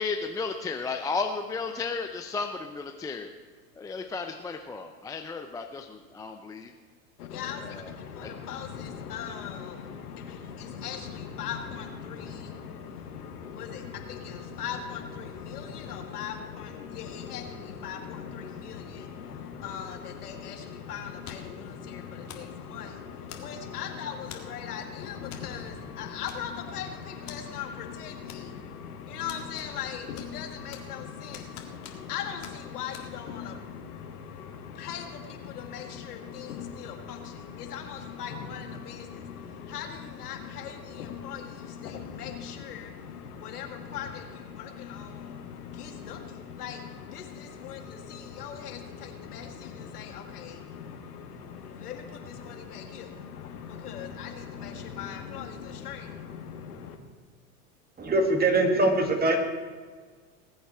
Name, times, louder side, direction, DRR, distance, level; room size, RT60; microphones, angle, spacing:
voice 1, 0.0-3.3 3.8-6.7 7.8-7.9 8.2-8.3, left 4 dB, 10° left, 5 dB, 0.4 m, -33 dB
voice 2, 7.2-57.0, left 7 dB, 80° left, 4 dB, 2.0 m, -39 dB
sound 1, 21.2-21.6 22.3-22.5 23.3-23.7 24.3-24.6 25.3-25.5 25.8-25.9 26.3-26.7 27.3-27.4 28.3-28.7 29.3-29.9 30.1-31.0 31.3-32.1 32.4-32.6 32.9-33.1, left 9 dB, 35° left, 1.8 m, -45 dB
voice 3, 58.0-59.4, right 2 dB, 20° right, 4 dB, 2.2 m, -22 dB
19.5 x 8.0 x 4.4 m, 1.5 s
hypercardioid pair, 105°, 45 cm